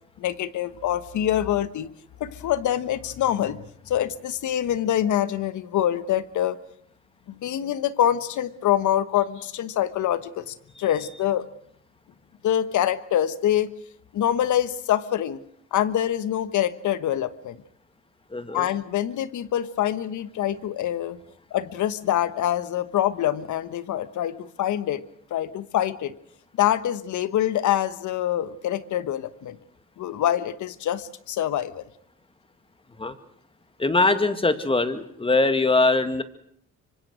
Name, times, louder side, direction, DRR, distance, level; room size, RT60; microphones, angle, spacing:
voice 1, 0.2-1.9 2.2-3.6 3.9-6.6 7.3-11.5 12.4-13.7 14.1-15.4 15.7-17.6 18.5-21.2 21.5-25.0 25.3-26.1 26.6-29.6 30.0-31.8, left 11 dB, 75° left, 14 dB, 1.3 m, -25 dB
voice 2, 18.3-18.7 33.0-33.1 33.8-36.2, left 3 dB, 20° left, 10 dB, 2.1 m, -22 dB
25.5 x 25.0 x 6.3 m, 0.65 s
cardioid pair, 90°, 30 cm